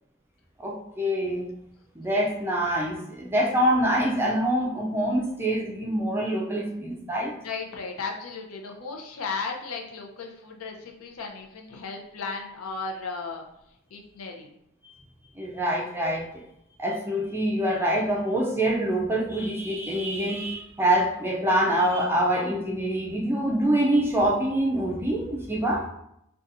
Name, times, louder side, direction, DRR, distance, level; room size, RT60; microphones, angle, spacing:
voice 1, 0.6-1.5 2.0-7.3 15.4-16.4 16.8-25.9, right 1 dB, 10° right, -1 dB, 0.4 m, -25 dB
voice 2, 7.4-13.4 13.9-14.6, left 4 dB, 90° left, 1 dB, 0.6 m, -35 dB
4.0 x 2.3 x 2.5 m, 0.78 s
head